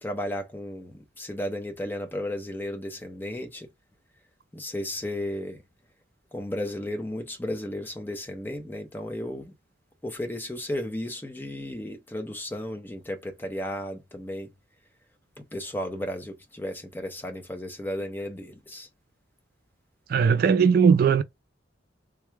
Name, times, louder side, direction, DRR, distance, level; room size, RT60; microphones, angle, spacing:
voice 1, 0.0-3.7 4.5-5.6 6.3-9.5 10.0-14.5 15.4-18.9, left 1 dB, 10° left, 0.7 m, -34 dB
voice 2, 20.1-21.2, right 6 dB, 50° right, 0.3 m, -19 dB
3.4 x 2.3 x 3.2 m
head